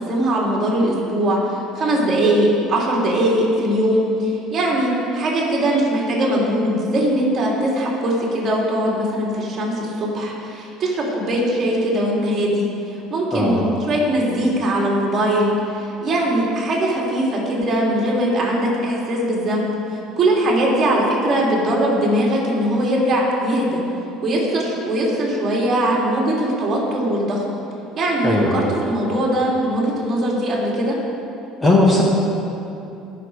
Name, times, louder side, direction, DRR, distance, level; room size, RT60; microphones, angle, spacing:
voice 1, 0.1-1.4 1.7-12.7 13.1-19.7 20.2-23.8 24.2-27.4 28.0-31.0, right 1 dB, 35° right, -4 dB, 3.2 m, -20 dB
voice 2, 13.3-13.6 28.2-28.6 31.6-32.0, left 2 dB, 15° left, -2 dB, 1.4 m, -17 dB
20.0 x 6.8 x 4.9 m, 2.8 s
cardioid pair, 135°, 0 cm